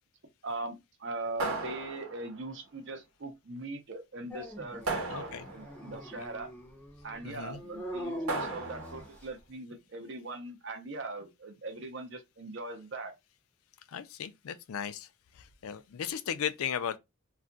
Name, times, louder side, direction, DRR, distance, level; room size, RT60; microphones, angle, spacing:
voice 1, 0.4-6.5 7.0-13.1, right 2 dB, 55° right, 0.6 m, -41 dB
sound 1, 1.4-2.5 4.9-5.8 8.3-9.1, right 3 dB, 75° right, 0.9 m, -35 dB
Dog, 4.3-9.4, equal, 5° left, 0.5 m, -43 dB
voice 2, 5.1-5.5 6.2-6.3 7.2-7.6 13.9-15.1 15.4-17.0, left 8 dB, 75° left, 0.4 m, -36 dB
2.4 x 2.2 x 3.7 m
head